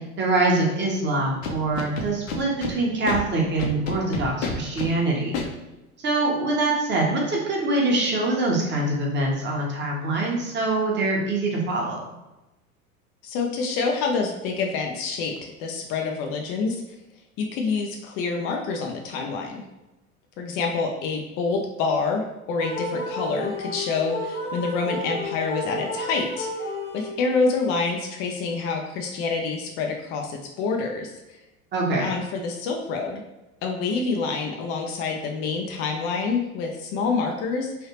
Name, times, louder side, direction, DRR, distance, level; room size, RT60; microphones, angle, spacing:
voice 1, 0.2-5.4 6.0-12.0 31.7-32.1, right 2 dB, 25° right, -2 dB, 1.0 m, -24 dB
Scratching (performance technique), 1.4-2.7 3.1-3.2 3.6-4.9 5.3-5.5, left 4 dB, 60° left, 0.8 m, -29 dB
voice 2, 13.2-16.8 17.4-19.6 20.4-26.5 26.9-31.4 32.0-33.2 33.6-37.9, left 4 dB, 30° left, 2 dB, 0.4 m, -27 dB
sound 1, 22.6-27.5, left 1 dB, 90° left, 1.0 m, -32 dB
3.3 x 2.7 x 2.9 m, 1.0 s
figure-of-eight pair, 80°, 43 cm